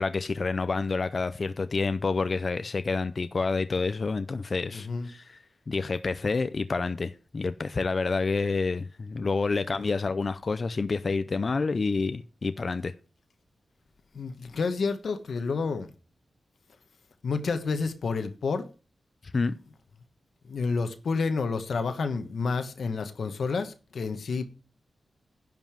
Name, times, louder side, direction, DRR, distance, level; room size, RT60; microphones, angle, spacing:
voice 1, 0.0-5.4 5.7-12.9 19.3-19.5, left 4 dB, 40° left, 0.5 m, -28 dB
voice 2, 4.7-5.1 14.1-15.9 17.2-18.7 20.5-24.4, left 4 dB, 70° left, 1.2 m, -29 dB
10.5 x 5.3 x 7.4 m
wide cardioid pair, 150°, 0 cm